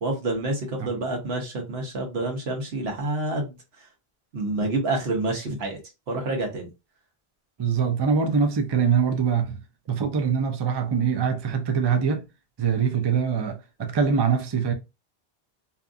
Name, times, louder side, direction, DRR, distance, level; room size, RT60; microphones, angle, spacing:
voice 1, 0.0-3.5 4.3-5.8 6.1-6.7, right 2 dB, 80° right, 1.1 m, -28 dB
voice 2, 7.6-9.6 9.9-12.3 12.6-14.7, right 6 dB, 45° right, 0.3 m, -23 dB
2.7 x 2.3 x 2.5 m
omnidirectional pair, 1.0 m